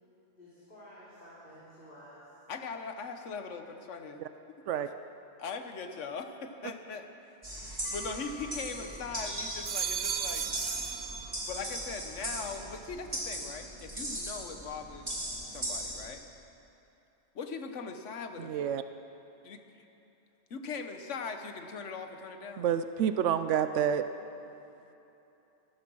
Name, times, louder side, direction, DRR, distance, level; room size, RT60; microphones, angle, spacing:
voice 1, 0.3-2.2 4.6-4.7, equal, 45° left, -11 dB, 3.6 m, -52 dB
voice 2, 2.5-4.2 4.5-4.6 5.4-10.5 11.5-15.2 15.5-16.2 17.3-18.7 19.4-19.6 20.5-22.7, left 5 dB, 85° left, 6 dB, 1.4 m, -40 dB
sound 1, 7.4-16.1, right 1 dB, 30° right, 3.0 m, -39 dB
sound 2, 7.8-9.0 9.4-11.9 12.2-12.8, right 6 dB, 45° right, 0.7 m, -37 dB
voice 3, 18.4-18.8 22.6-24.0, right 9 dB, 85° right, 10 dB, 0.9 m, -28 dB
14.5 x 14.5 x 6.2 m, 2.9 s
omnidirectional pair, 1.2 m